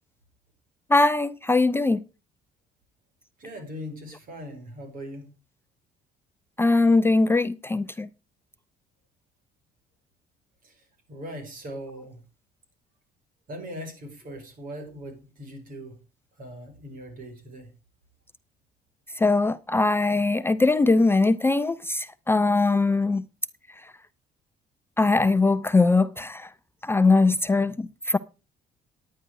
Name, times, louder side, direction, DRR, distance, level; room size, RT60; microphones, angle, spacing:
voice 1, 0.9-2.0 6.6-8.1 19.2-23.2 25.0-26.5 26.8-28.2, left 3 dB, 15° left, 0.5 m, -21 dB
voice 2, 3.4-5.3 10.6-10.7 11.1-12.2 13.5-16.0 16.4-17.7, equal, 55° right, 4.9 m, -40 dB
10.0 x 9.9 x 4.7 m
cardioid pair, 110°, 17 cm